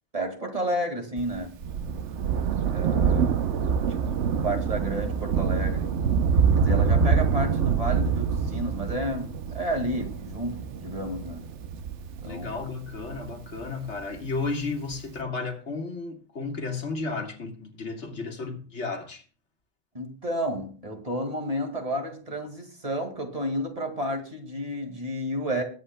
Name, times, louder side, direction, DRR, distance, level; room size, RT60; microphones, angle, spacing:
voice 1, 0.1-1.5 2.7-3.4 3.9-4.2 4.4-5.9 6.6-11.5 12.2-12.6 19.9-25.6, equal, 30° right, 2.2 m, -31 dB
Thunder, 1.2-14.0 14.9-15.0, right 6 dB, 85° right, 1.1 m, -26 dB
voice 2, 12.2-19.2, left 4 dB, 85° left, 2.1 m, -33 dB
21.0 x 8.2 x 2.2 m
omnidirectional pair, 1.2 m